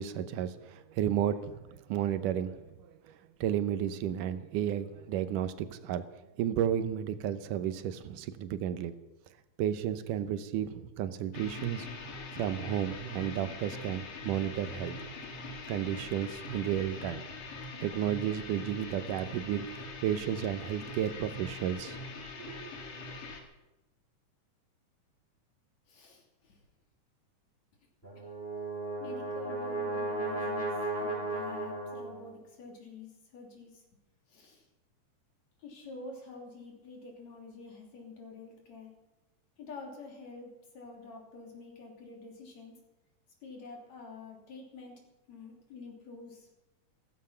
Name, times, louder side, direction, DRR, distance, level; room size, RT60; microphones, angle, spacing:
voice 1, 0.0-6.0 6.4-8.9 9.6-11.9 12.3-15.0 15.7-17.2 17.8-22.0 22.4-22.7, right 10 dB, 85° right, 12 dB, 2.5 m, -33 dB
sound 1, 11.3-23.4, left 3 dB, 85° left, 3.7 m, -43 dB
voice 2, 25.9-26.6 29.0-33.8 34.3-34.7 35.6-38.9 39.6-42.8 43.4-46.5, left 3 dB, 60° left, 0 dB, 4.2 m, -48 dB
Brass instrument, 28.0-32.3, right 2 dB, 5° left, 5.9 m, -35 dB
15.5 x 15.0 x 5.7 m, 0.99 s
omnidirectional pair, 3.6 m